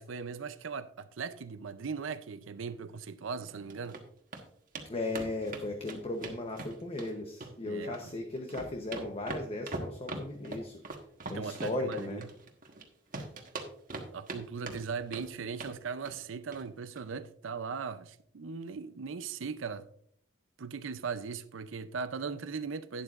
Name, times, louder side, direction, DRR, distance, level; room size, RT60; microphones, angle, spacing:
voice 1, 0.0-4.0 7.7-8.1 11.3-12.3 14.1-19.9 20.6-23.0, right 5 dB, 85° right, 0.5 m, -39 dB
sound 1, 3.5-4.0 4.3-4.4 4.7-4.9 5.1-7.1 7.4-8.1 8.4-12.8 13.1-14.4 14.7-15.3 15.6-15.8 16.0-16.2 16.5-16.6 16.9-17.0, right 3 dB, 45° right, 1.3 m, -41 dB
voice 2, 4.9-10.8 11.3-12.2, left 2 dB, 30° left, 0.8 m, -36 dB
11.5 x 10.5 x 2.5 m
head